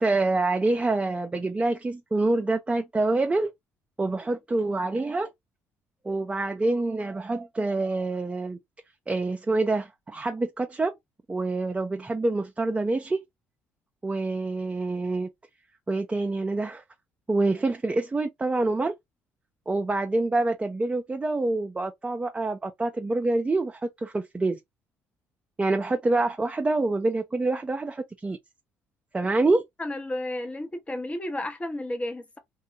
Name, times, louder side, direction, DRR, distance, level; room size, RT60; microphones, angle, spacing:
voice 1, 0.0-3.5 4.0-5.3 6.0-8.6 9.1-10.9 11.3-13.2 14.0-15.3 15.9-16.8 17.3-18.9 19.7-24.6 25.6-28.4 29.1-29.6, right 2 dB, 20° right, 0.5 m, -26 dB
voice 2, 29.8-32.4, left 1 dB, 20° left, 0.8 m, -32 dB
2.7 x 2.1 x 2.7 m
supercardioid pair, 65°, 6 cm